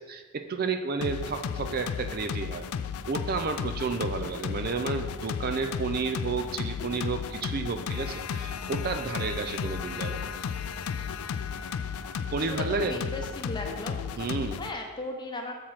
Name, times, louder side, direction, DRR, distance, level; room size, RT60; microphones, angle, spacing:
voice 1, 0.0-2.6 3.1-10.3 12.3-13.0 14.2-14.6, right 4 dB, 40° right, 7 dB, 0.4 m, -31 dB
sound 1, 1.0-14.7, left 7 dB, 75° left, 0.3 m, -34 dB
Wind instrument woodwind instrument, 9.6-13.9, left 2 dB, 15° right, 1.9 m, -48 dB
voice 2, 12.4-14.0 14.6-15.5, left 2 dB, 20° left, 1 dB, 0.8 m, -36 dB
7.2 x 4.9 x 5.7 m, 1.3 s
head